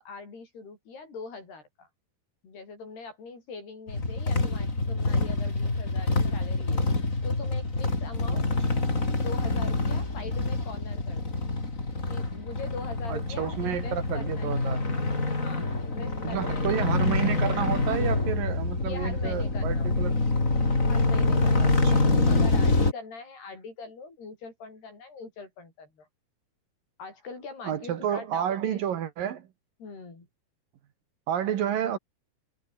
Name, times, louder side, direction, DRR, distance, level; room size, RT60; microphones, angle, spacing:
voice 1, 0.0-1.9 2.4-6.8 7.2-8.5 9.2-11.4 12.1-14.7 15.4-16.7 18.8-19.9 20.9-26.1 27.0-28.8 29.8-30.3, left 4 dB, 70° left, 10.0 m, -42 dB
sound 1, 3.9-22.9, left 3 dB, 20° left, 4.2 m, -26 dB
voice 2, 13.1-14.9 16.2-20.2 21.6-22.0 27.6-29.5 31.3-32.0, right 9 dB, 65° right, 3.0 m, -30 dB
omnidirectional pair, 4.8 m